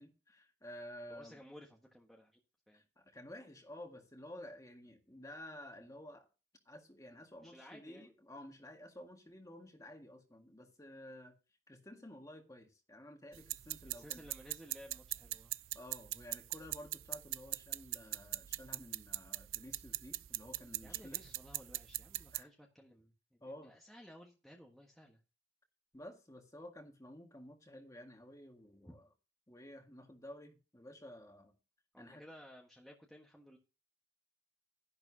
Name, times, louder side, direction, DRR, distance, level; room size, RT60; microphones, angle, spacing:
voice 1, 0.0-1.4 2.7-6.3 6.7-11.3 11.7-14.2 15.7-21.2 22.3-22.5 23.4-23.8 25.9-29.1 29.5-31.6 32.0-32.2, left 1 dB, 15° left, 1.9 m, -52 dB
voice 2, 1.1-2.4 2.7-2.8 7.4-8.1 13.9-15.5 20.8-25.2 28.9-29.0 31.9-33.6, equal, ahead, 1.4 m, -56 dB
sound 1, 13.3-22.4, right 17 dB, 85° right, 0.5 m, -42 dB
12.0 x 11.0 x 2.8 m
head